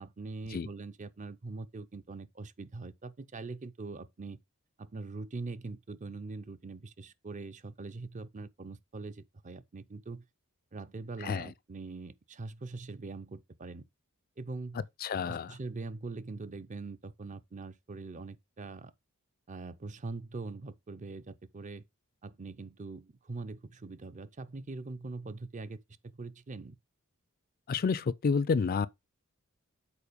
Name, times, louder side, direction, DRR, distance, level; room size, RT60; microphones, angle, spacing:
voice 1, 0.0-4.4 4.8-10.3 10.7-13.8 14.4-14.8 15.3-18.9 19.5-21.8 22.2-26.8, right 3 dB, 35° right, 0.6 m, -42 dB
voice 2, 15.0-15.5 27.7-28.9, left 5 dB, 45° left, 0.4 m, -29 dB
7.0 x 4.5 x 5.0 m
head